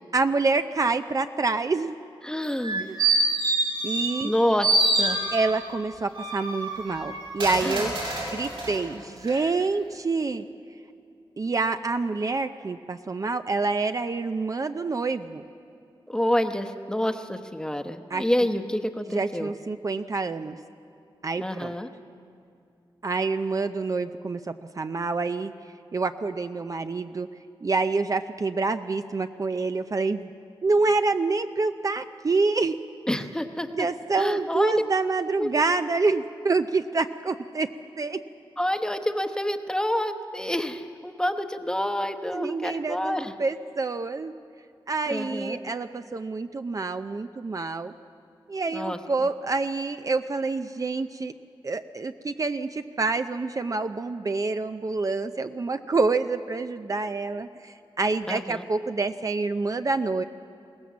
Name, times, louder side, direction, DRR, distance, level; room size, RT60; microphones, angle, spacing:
voice 1, 0.1-1.9 2.9-3.0 3.8-4.3 5.3-7.9 8.3-10.4 11.4-15.4 18.1-18.2 19.1-20.6 21.2-21.7 23.0-25.5 25.9-27.3 27.6-30.3 30.6-32.8 33.7-37.7 38.0-38.2 42.3-44.3 44.9-47.9 48.5-51.3 51.6-60.2, right 3 dB, 40° right, 8 dB, 0.6 m, -27 dB
voice 2, 2.2-2.8 4.2-5.2 7.6-7.9 16.1-19.6 21.4-21.9 33.1-33.9 34.2-34.8 35.4-35.6 38.6-43.3 45.1-45.6 48.7-49.0 58.3-58.6, left 1 dB, 10° left, 8 dB, 1.0 m, -28 dB
sound 1, 2.4-4.3 4.6-5.6 6.1-8.8 9.2-9.3, right 2 dB, 75° right, 7.7 m, -26 dB
22.0 x 18.0 x 7.4 m, 2.5 s
wide cardioid pair, 90°, 9 cm